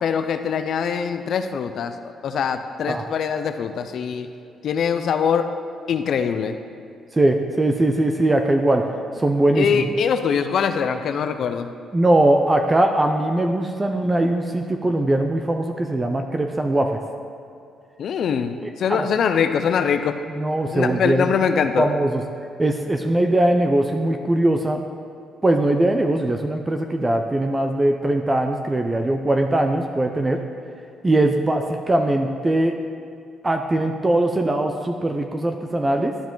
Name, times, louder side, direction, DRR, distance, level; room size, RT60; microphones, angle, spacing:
voice 1, 0.0-2.0 2.2-4.3 4.6-5.5 5.9-6.6 9.6-11.7 18.0-20.2 20.7-21.9, left 7 dB, 65° left, 9 dB, 0.4 m, -23 dB
voice 2, 7.1-8.8 9.2-9.8 11.9-17.0 18.9-19.0 20.3-21.3 21.8-22.2 22.6-24.8 25.4-30.4 31.0-32.7 33.4-36.1, right 1 dB, 20° right, 5 dB, 0.5 m, -20 dB
11.5 x 4.9 x 3.9 m, 2.5 s
cardioid pair, 90°, 0 cm